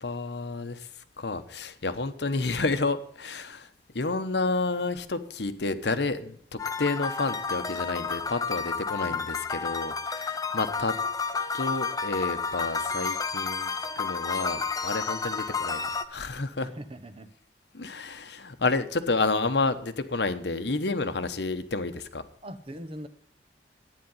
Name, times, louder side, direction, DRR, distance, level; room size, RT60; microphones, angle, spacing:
voice 1, 0.0-0.9 1.2-3.7 3.9-10.9 11.5-13.7 14.0-16.7 17.7-22.2, left 3 dB, 70° left, 10 dB, 1.0 m, -30 dB
sound 1, 6.6-16.0, left 5 dB, 20° left, 0.7 m, -31 dB
voice 2, 16.6-17.3 22.4-23.1, right 1 dB, 30° right, 9 dB, 1.0 m, -41 dB
10.5 x 9.3 x 5.6 m, 0.62 s
head